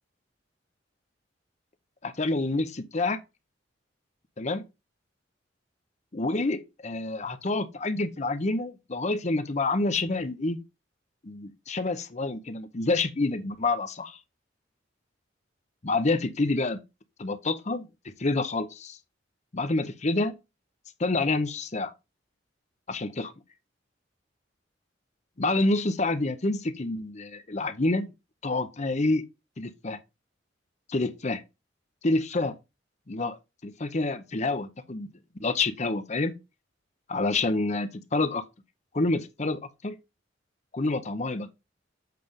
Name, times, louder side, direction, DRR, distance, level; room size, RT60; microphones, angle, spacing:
voice 1, 2.0-3.2 4.4-4.6 6.1-10.6 11.2-14.2 15.8-16.8 17.2-19.0 19.5-20.3 21.0-21.9 22.9-23.3 25.4-28.1 28.4-29.2 29.6-30.0 30.9-31.4 32.0-32.5 33.1-33.4 33.6-35.1 35.4-36.3 37.1-38.4 38.9-40.0 40.7-41.5, left 2 dB, 40° left, 0.8 m, -28 dB
7.6 x 3.3 x 5.3 m
head